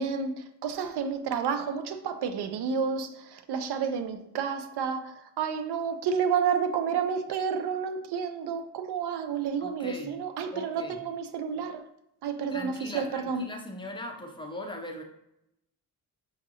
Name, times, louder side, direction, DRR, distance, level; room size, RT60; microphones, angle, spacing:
voice 1, 0.0-11.8 12.2-13.5, right 6 dB, 85° right, 0.5 m, -30 dB
voice 2, 9.6-10.2 10.5-11.0 12.5-15.0, left 1 dB, 15° left, 0.3 m, -40 dB
5.1 x 2.4 x 2.7 m
wide cardioid pair, 175°, 39 cm